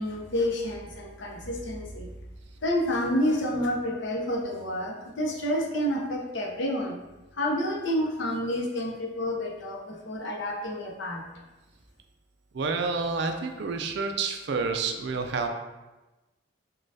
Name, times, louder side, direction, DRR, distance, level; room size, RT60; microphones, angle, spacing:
voice 1, 0.0-2.1 2.6-7.0 7.3-11.2, left 1 dB, 65° left, -1 dB, 0.7 m, -29 dB
voice 2, 12.5-15.5, right 4 dB, 55° right, 5 dB, 0.4 m, -29 dB
6.3 x 2.2 x 2.7 m, 1.1 s
head